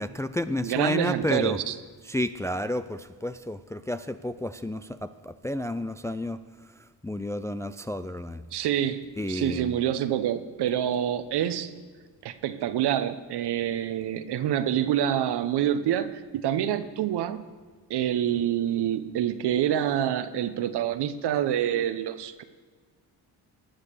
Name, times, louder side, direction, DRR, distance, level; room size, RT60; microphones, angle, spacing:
voice 1, 0.0-1.6 2.1-6.4 7.0-8.4 9.2-9.8, left 1 dB, 10° left, 11 dB, 0.3 m, -31 dB
voice 2, 0.6-1.7 8.5-11.7 12.2-17.4 17.9-22.4, right 10 dB, 70° right, 12 dB, 1.0 m, -27 dB
19.0 x 6.6 x 6.7 m, 1.5 s
cardioid pair, 85°, 42 cm